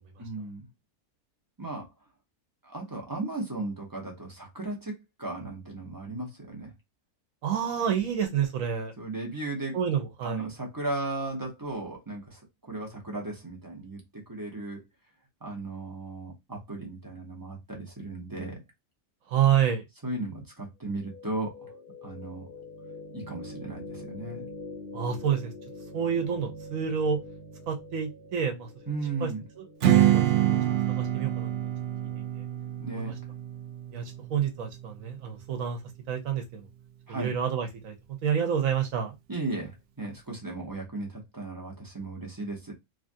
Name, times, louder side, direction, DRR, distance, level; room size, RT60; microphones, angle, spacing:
voice 1, 0.2-0.6 1.6-1.9 2.6-6.7 9.0-9.8 10.2-14.8 15.4-18.6 20.0-21.7 22.0-22.5 23.1-24.4 28.9-29.4 32.8-33.1 37.1-37.3 39.3-42.7, right 2 dB, 20° right, 0.7 m, -36 dB
voice 2, 7.4-8.9 9.7-10.4 19.3-19.8 24.9-25.5 25.9-27.2 27.7-28.7 29.2-29.3 29.6-29.7 29.9-30.6 30.9-31.5 32.1-32.4 32.9-33.1 33.9-35.8 36.1-36.7 37.1-39.2, right 8 dB, 80° right, 1.1 m, -28 dB
sound 1, 20.9-33.0, left 2 dB, 45° left, 0.9 m, -45 dB
Strum, 29.8-35.0, right 12 dB, 60° right, 0.7 m, -26 dB
3.1 x 2.4 x 2.5 m
omnidirectional pair, 1.4 m